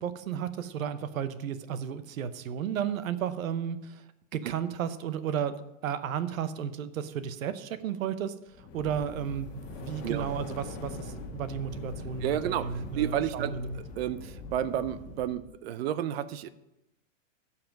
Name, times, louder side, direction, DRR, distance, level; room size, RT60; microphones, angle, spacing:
voice 1, 0.0-4.0 4.3-5.6 5.8-8.3 8.7-13.8, right 8 dB, 90° right, 12 dB, 0.9 m, -33 dB
sound 1, 8.5-15.5, left 2 dB, 35° left, 1.6 m, -42 dB
voice 2, 12.2-16.5, right 11 dB, 50° right, 15 dB, 0.6 m, -31 dB
14.0 x 5.9 x 5.2 m, 0.91 s
supercardioid pair, 155°, 39 cm